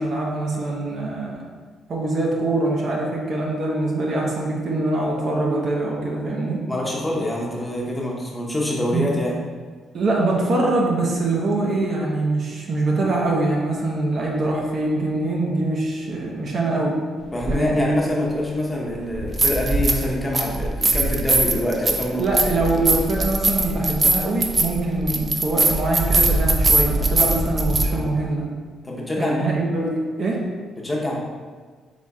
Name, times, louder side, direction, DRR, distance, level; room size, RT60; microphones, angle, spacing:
voice 1, 0.0-1.5 1.9-6.6 8.9-9.1 9.9-17.0 17.5-18.0 22.2-28.5 29.2-30.4, right 2 dB, 55° right, -2 dB, 0.8 m, -23 dB
voice 2, 6.7-9.3 17.3-22.2 27.2-27.3 27.9-28.1 28.8-29.5 30.8-31.2, left 1 dB, 15° left, -3 dB, 0.9 m, -25 dB
sound 1, 17.4-17.6 19.1-20.1 20.3-27.9, right 2 dB, 30° right, 0.5 m, -20 dB
4.1 x 3.1 x 3.5 m, 1.5 s
cardioid pair, 90°, 0 cm